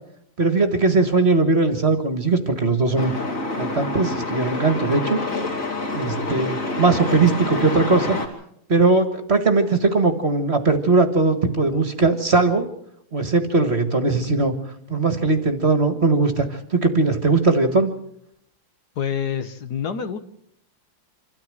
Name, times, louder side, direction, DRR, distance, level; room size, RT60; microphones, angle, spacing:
voice 1, 0.4-3.1 3.6-5.2 5.9-8.2 8.7-12.6 13.1-14.5 14.9-17.9, right 3 dB, 35° right, 8 dB, 1.8 m, -19 dB
Truck, 3.0-8.3, left 2 dB, 45° left, 3.2 m, -27 dB
voice 2, 19.0-20.2, left 7 dB, 60° left, 10 dB, 1.6 m, -27 dB
26.5 x 13.0 x 7.7 m, 0.72 s
omnidirectional pair, 2.1 m